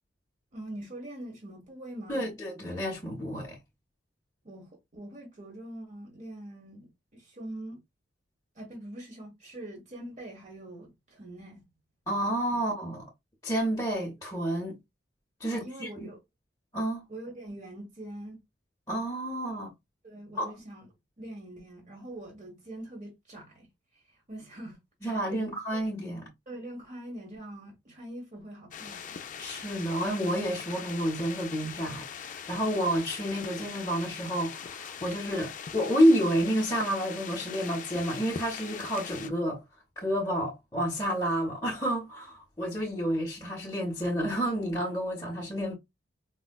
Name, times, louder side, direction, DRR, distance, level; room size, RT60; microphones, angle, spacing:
voice 1, 0.5-2.3 4.4-7.8 8.5-11.6 12.5-12.6 15.4-16.2 17.1-18.4 20.0-20.9 21.2-23.7 24.3-25.8 26.5-29.2, right 1 dB, 40° right, 1.3 m, -43 dB
voice 2, 2.1-3.6 12.1-13.0 13.4-14.8 15.4-15.9 16.7-17.1 18.9-19.7 20.4-20.5 25.0-26.2 29.4-39.6 40.0-45.7, equal, 15° left, 0.7 m, -29 dB
sound 1, 28.7-39.3, left 7 dB, 40° left, 0.3 m, -41 dB
4.2 x 2.1 x 2.2 m
head